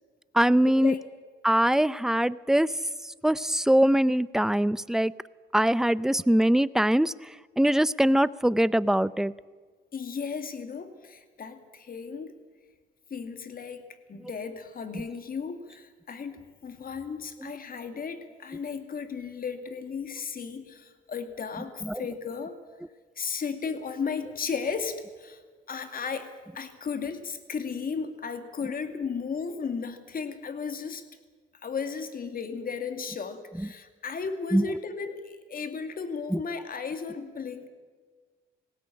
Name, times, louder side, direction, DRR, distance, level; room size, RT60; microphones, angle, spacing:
voice 1, 0.3-0.9 1.4-2.7 3.2-5.1 5.5-7.1 7.6-9.3 14.2-14.3 14.9-15.0 17.4-17.5 21.6-22.1 33.6-33.7 34.5-34.8 36.3-36.4, right 1 dB, ahead, 18 dB, 0.5 m, -23 dB
voice 2, 9.9-12.3 13.1-22.6 23.2-25.4 25.7-31.0 31.6-37.7, left 5 dB, 45° left, 8 dB, 2.3 m, -35 dB
19.0 x 16.5 x 8.7 m, 1.5 s
cardioid pair, 90°, 20 cm